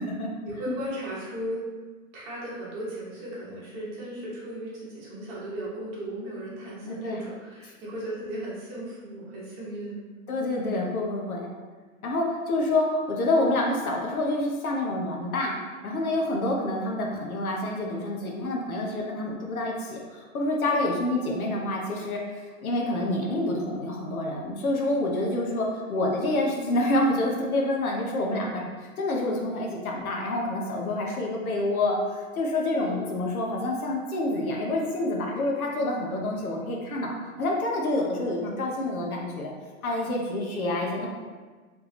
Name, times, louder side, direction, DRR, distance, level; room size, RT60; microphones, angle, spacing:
voice 1, 0.4-1.6 2.1-10.0 32.8-33.0, right 1 dB, 20° right, -7 dB, 0.9 m, -36 dB
voice 2, 6.9-7.2 10.3-11.5 12.0-15.6 15.8-39.5 39.8-41.1, left 1 dB, 80° left, -1 dB, 1.0 m, -27 dB
3.4 x 3.4 x 3.1 m, 1.4 s
hypercardioid pair, 160°, 42 cm